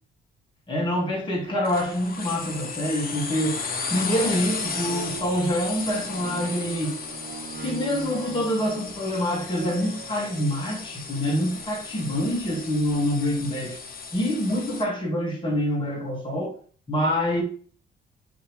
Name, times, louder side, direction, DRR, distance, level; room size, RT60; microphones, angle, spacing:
voice 1, 0.7-3.6 3.9-7.0 7.6-13.8 14.1-16.6 16.9-17.4, equal, 25° left, 2.4 m, -26 dB
sound 1, 1.6-14.8, left 4 dB, 50° left, 1.3 m, -35 dB
sound 2, 4.5-4.6 4.8-10.8 11.4-11.5, right 4 dB, 50° right, 1.5 m, -41 dB
8.7 x 3.5 x 3.4 m
cardioid pair, 90°, 20 cm